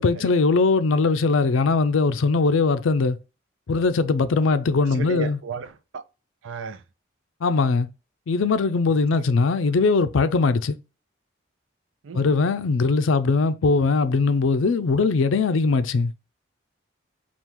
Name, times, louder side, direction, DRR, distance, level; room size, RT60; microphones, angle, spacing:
voice 1, 0.0-3.2 3.7-5.4 7.4-7.9 8.3-10.8 12.1-16.1, left 4 dB, 85° left, 0.5 m, -20 dB
voice 2, 4.8-6.0 6.4-6.8 12.0-12.3, right 5 dB, 80° right, 0.5 m, -35 dB
4.4 x 2.4 x 3.6 m
head